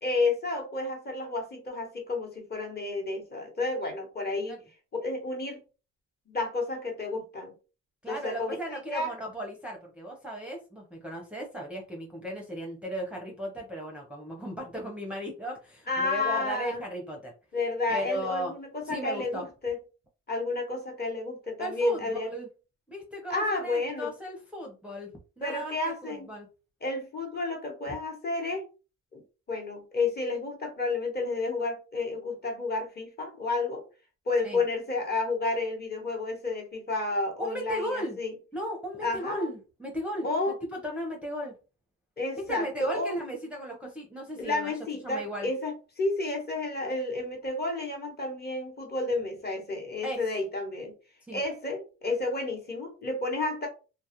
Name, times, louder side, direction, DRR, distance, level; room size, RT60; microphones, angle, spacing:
voice 1, 0.0-4.6 4.9-5.6 6.3-7.5 8.1-9.1 15.9-16.8 17.5-19.8 20.3-22.3 23.3-24.1 25.4-26.3 26.8-28.6 29.1-29.2 29.5-33.8 34.3-38.3 39.0-39.5 40.2-40.6 42.2-43.2 44.4-50.9 51.3-53.7, left 3 dB, 30° left, 1.0 m, -31 dB
voice 2, 8.0-17.3 17.9-18.5 18.8-19.4 21.6-22.5 22.9-25.1 25.4-26.5 34.4-34.6 37.4-38.2 38.5-41.5 42.4-44.7 45.0-45.5 50.0-50.2 51.3-51.4, equal, 5° right, 0.6 m, -36 dB
2.3 x 2.1 x 2.8 m
cardioid pair, 90°, 30 cm